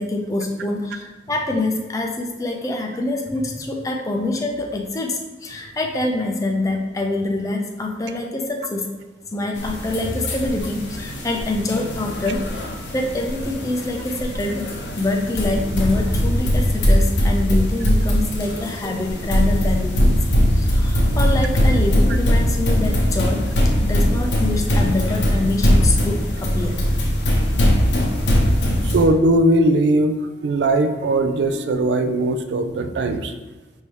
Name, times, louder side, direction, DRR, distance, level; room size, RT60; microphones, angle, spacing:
voice 1, 0.0-8.9 9.3-12.4 12.9-14.7 15.0-20.1 20.5-26.9, left 2 dB, 20° left, 2 dB, 0.4 m, -25 dB
sound 1, 9.6-29.1, equal, 90° left, 0.8 m, -20 dB
voice 2, 28.9-30.2 30.4-33.3, right 1 dB, 80° right, 8 dB, 0.4 m, -19 dB
4.6 x 2.7 x 3.1 m, 1.2 s
head